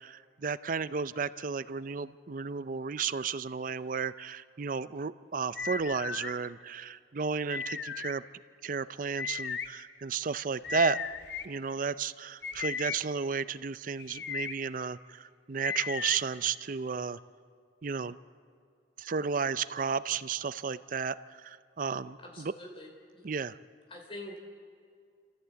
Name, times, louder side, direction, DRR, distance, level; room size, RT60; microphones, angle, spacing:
voice 1, 0.0-8.2 8.6-11.0 11.4-17.2 17.8-18.2 19.0-22.5 23.2-23.6, right 5 dB, 50° right, 15 dB, 0.5 m, -33 dB
sound 1, 5.6-6.3 7.5-8.1 9.2-9.7 10.6-11.5 12.4-13.0 14.0-14.5 15.6-16.2, left 6 dB, 70° left, 0.9 m, -35 dB
voice 2, 22.2-23.2 23.9-24.4, left 1 dB, 30° left, 1 dB, 3.4 m, -45 dB
28.0 x 15.0 x 8.2 m, 2.2 s
head